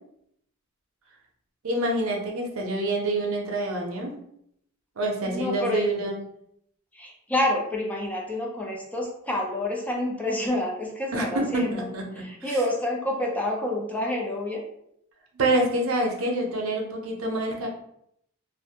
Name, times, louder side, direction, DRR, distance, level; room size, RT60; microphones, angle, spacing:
voice 1, 1.6-4.1 5.0-6.2 11.1-12.6 15.3-17.7, right 1 dB, 85° right, 0 dB, 0.6 m, -27 dB
voice 2, 5.3-5.8 6.9-11.9 12.2-14.6, left 1 dB, 5° left, -1 dB, 0.4 m, -28 dB
2.5 x 2.0 x 2.8 m, 0.72 s
head